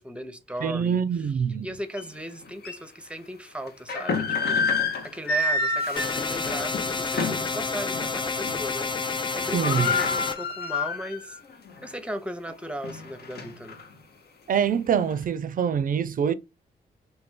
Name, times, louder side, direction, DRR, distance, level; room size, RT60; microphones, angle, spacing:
voice 1, 0.0-1.3 1.6-4.7 5.0-11.4 11.8-13.8, equal, 5° right, 0.7 m, -37 dB
voice 2, 0.6-1.7 9.5-9.9 14.5-16.3, right 7 dB, 50° right, 0.4 m, -25 dB
sound 1, 2.0-2.1 2.6-2.8 3.7-7.5 7.9-8.1 8.4-8.9 9.1-9.2 9.4-11.4 11.8-11.9 12.5-13.8, left 3 dB, 60° left, 0.7 m, -28 dB
sound 2, 6.0-10.4, left 4 dB, 25° left, 0.5 m, -29 dB
2.7 x 2.5 x 3.6 m
supercardioid pair, 45°, 18 cm